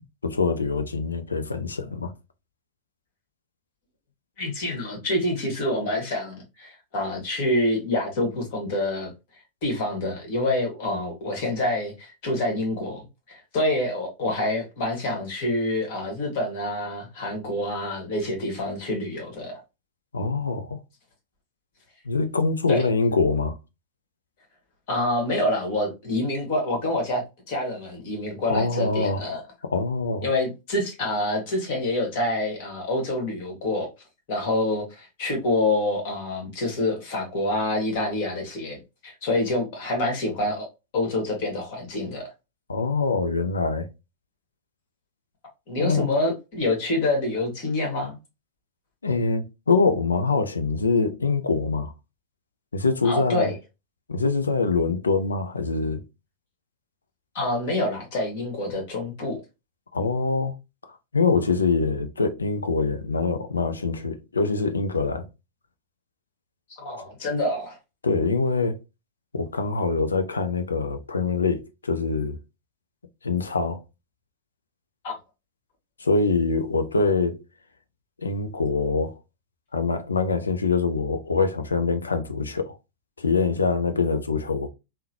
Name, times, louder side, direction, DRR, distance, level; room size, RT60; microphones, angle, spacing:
voice 1, 0.2-2.1 20.1-20.8 22.0-23.6 28.5-29.2 29.6-30.3 42.7-43.9 45.8-46.1 49.0-51.9 52.7-53.5 54.1-56.0 59.9-60.5 61.1-65.3 68.0-68.8 69.3-72.4 73.2-73.8 76.0-77.4 78.2-79.1 79.7-82.8 83.2-84.7, left 4 dB, 75° left, 0.5 m, -24 dB
voice 2, 4.4-9.1 9.6-19.6 22.7-22.8 24.9-29.4 30.2-33.9 34.3-40.7 40.9-42.3 45.7-48.2 53.0-53.6 57.3-59.4 66.7-67.8 75.0-75.2, left 1 dB, 50° left, 1.6 m, -27 dB
3.6 x 2.2 x 2.8 m
figure-of-eight pair, 90°, 0 cm